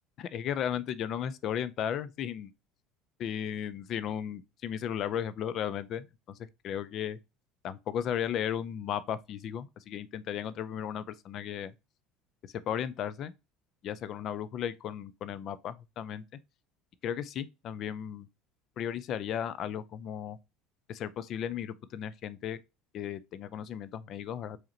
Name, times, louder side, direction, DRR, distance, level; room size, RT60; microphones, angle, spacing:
voice 1, 0.2-2.5 3.2-6.4 6.6-7.2 7.6-11.7 12.7-13.3 13.8-16.2 17.0-18.3 18.8-20.4 20.9-22.6 22.9-24.6, left 9 dB, 40° left, 0.4 m, -35 dB
4.9 x 2.9 x 2.7 m
cardioid pair, 155°, 0 cm